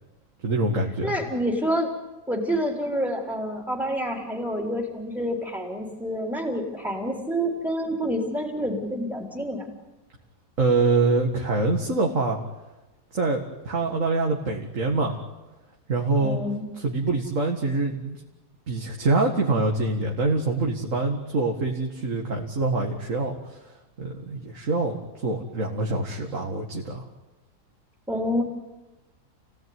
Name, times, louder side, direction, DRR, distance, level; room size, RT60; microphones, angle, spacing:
voice 1, 0.4-1.1 10.6-12.4 13.1-15.2 15.9-16.4 16.8-18.2 18.7-23.6 24.0-27.1, right 3 dB, 50° right, 0 dB, 2.3 m, -25 dB
voice 2, 1.0-1.9 2.3-9.7 16.2-16.7 28.1-28.4, equal, 5° right, 1 dB, 3.5 m, -28 dB
29.0 x 17.0 x 9.6 m, 1.1 s
omnidirectional pair, 1.7 m